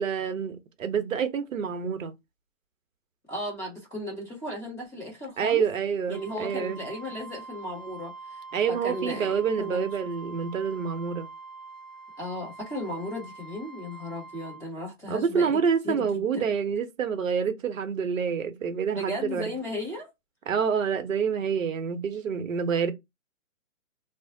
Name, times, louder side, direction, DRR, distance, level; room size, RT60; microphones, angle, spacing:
voice 1, 0.0-2.1 5.4-6.8 8.5-11.3 15.1-19.4 20.5-22.9, right 6 dB, 80° right, 0.8 m, -27 dB
voice 2, 3.3-5.6 6.1-8.4 8.7-9.9 12.2-15.6 15.8-16.0 16.3-16.5 18.9-20.1, left 1 dB, 5° left, 0.4 m, -35 dB
Wind instrument woodwind instrument, 6.1-14.7, right 4 dB, 70° left, 1.0 m, -44 dB
2.5 x 2.0 x 3.8 m
hypercardioid pair, 150°, 39 cm